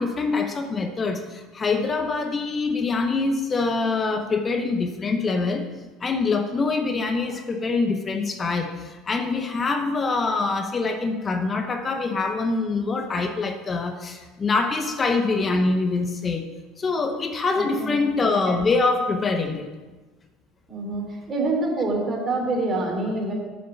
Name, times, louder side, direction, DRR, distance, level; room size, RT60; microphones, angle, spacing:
voice 1, 0.0-5.7 6.0-16.5 16.8-19.7, left 3 dB, 30° left, 6 dB, 0.9 m, -24 dB
voice 2, 17.5-17.9 20.7-23.3, right 2 dB, 35° right, 0 dB, 3.0 m, -26 dB
7.0 x 6.4 x 7.0 m, 1.3 s
hypercardioid pair, 70°, 0 cm